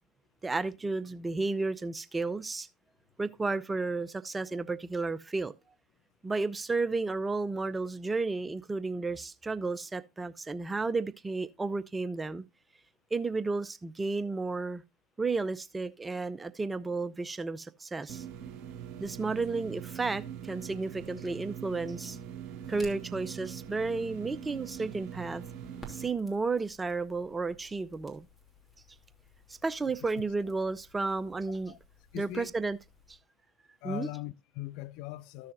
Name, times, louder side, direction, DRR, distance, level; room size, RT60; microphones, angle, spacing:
voice 1, 0.4-2.7 3.2-5.5 6.2-12.4 13.1-14.8 15.2-18.2 19.0-22.2 22.7-25.4 25.9-28.3 29.6-31.7 32.1-32.8 33.8-34.1, right 3 dB, 15° right, 0.6 m, -32 dB
sound 1, 18.1-26.1, right 9 dB, 55° right, 1.5 m, -43 dB
Crackle, 22.2-33.2, right 1 dB, 10° left, 2.8 m, -57 dB
voice 2, 32.1-32.5 33.8-35.5, left 16 dB, 55° left, 0.4 m, -40 dB
14.0 x 6.5 x 2.6 m
figure-of-eight pair, 70°, 0 cm